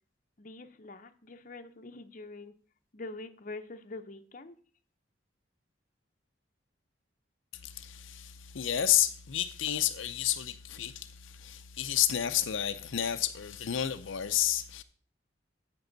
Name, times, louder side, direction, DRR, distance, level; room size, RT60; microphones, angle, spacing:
voice 1, 0.4-2.5 2.9-4.6, left 2 dB, 40° left, 0.7 m, -44 dB
voice 2, 7.5-14.8, left 11 dB, 80° left, 0.6 m, -31 dB
15.0 x 5.4 x 4.0 m
head